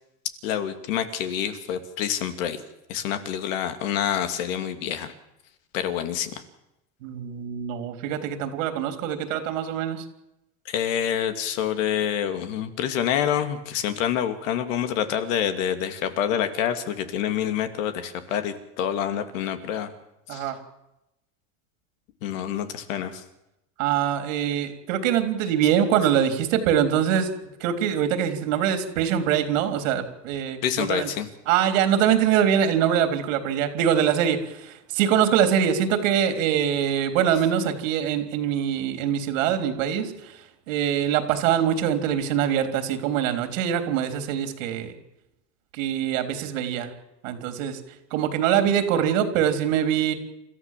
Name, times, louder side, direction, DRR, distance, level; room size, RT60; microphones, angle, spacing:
voice 1, 0.4-2.6 2.9-5.1 5.7-6.4 10.7-19.9 20.3-20.5 22.2-23.2 30.6-31.3, left 9 dB, 85° left, 8 dB, 2.7 m, -27 dB
voice 2, 7.0-10.1 20.3-20.6 23.8-31.1 31.5-45.0 45.7-46.9 47.2-47.8 48.1-50.1, right 9 dB, 85° right, 8 dB, 3.6 m, -24 dB
29.5 x 14.5 x 7.6 m, 0.90 s
supercardioid pair, 130°, 38 cm